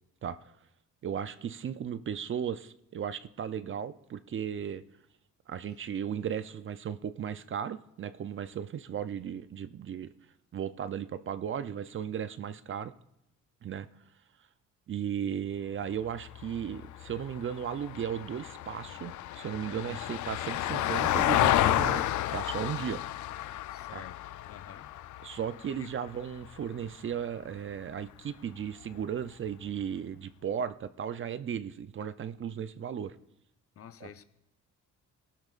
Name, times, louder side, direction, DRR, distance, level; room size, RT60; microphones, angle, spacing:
voice 1, 0.2-0.5 1.0-4.8 5.5-10.1 10.5-12.9 13.6-13.9 14.9-23.0 23.9-24.0 25.2-33.2 34.0-34.1, right 8 dB, 40° right, 0.5 m, -36 dB
Vehicle, 16.1-26.5 28.8-28.9, left 13 dB, 75° left, 0.5 m, -31 dB
voice 2, 23.7-24.9 25.8-25.9 33.8-34.2, left 8 dB, 50° left, 0.8 m, -49 dB
18.5 x 12.0 x 2.5 m
cardioid pair, 90°, 30 cm